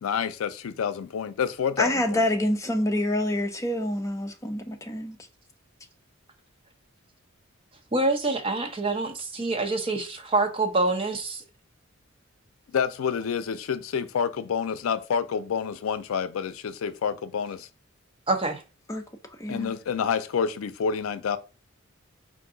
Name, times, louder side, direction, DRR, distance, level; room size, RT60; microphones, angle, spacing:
voice 1, 0.0-2.2 12.7-17.7 19.5-21.4, left 7 dB, 90° left, 0.4 m, -28 dB
voice 2, 1.8-5.2 18.9-19.0 19.4-19.7, left 1 dB, 15° left, 0.5 m, -27 dB
voice 3, 7.9-11.4 18.3-18.6, right 2 dB, 25° right, 0.6 m, -26 dB
4.6 x 2.5 x 3.7 m
head